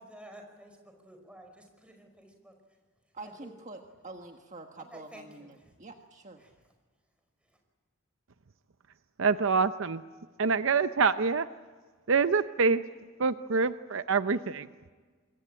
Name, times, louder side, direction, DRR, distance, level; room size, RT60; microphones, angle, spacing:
voice 1, 0.0-2.5 3.2-3.5 4.8-5.5 6.4-6.6 7.4-7.6, right 1 dB, 5° right, 4 dB, 5.2 m, -51 dB
voice 2, 3.1-6.4, right 2 dB, 35° right, 3 dB, 1.4 m, -46 dB
voice 3, 9.2-10.0 10.4-11.5 12.1-12.8 13.2-14.7, right 5 dB, 60° right, 11 dB, 0.7 m, -26 dB
26.5 x 22.5 x 8.8 m, 1.5 s
head